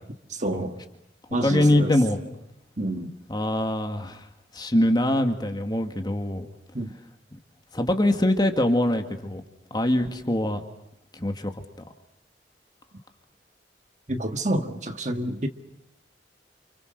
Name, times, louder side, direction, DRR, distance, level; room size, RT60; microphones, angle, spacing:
voice 1, 0.3-0.7 1.3-1.9 2.8-3.1 6.7-6.9 14.1-15.5, right 1 dB, 40° right, 6 dB, 1.7 m, -28 dB
voice 2, 1.4-2.2 3.3-4.2 4.5-6.5 7.7-9.4 9.7-10.6 11.1-11.5, left 1 dB, 25° left, 6 dB, 2.1 m, -23 dB
29.5 x 29.0 x 6.7 m, 0.84 s
head